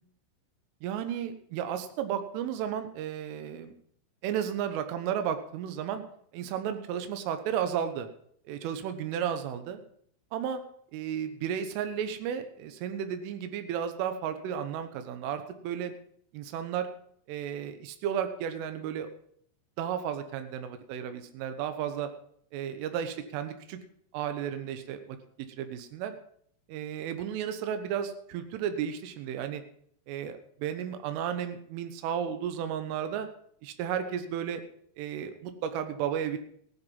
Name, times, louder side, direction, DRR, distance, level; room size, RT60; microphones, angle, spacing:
voice 1, 0.8-3.7 4.2-6.0 6.3-8.1 8.5-9.8 10.3-10.6 10.9-15.9 16.3-16.9 17.3-19.1 19.8-22.1 22.5-23.8 24.1-25.2 25.6-26.2 26.7-29.6 30.1-33.3 33.6-34.6 35.0-36.4, right 9 dB, 75° right, 8 dB, 3.6 m, -33 dB
16.0 x 10.0 x 5.5 m, 0.65 s
omnidirectional pair, 5.9 m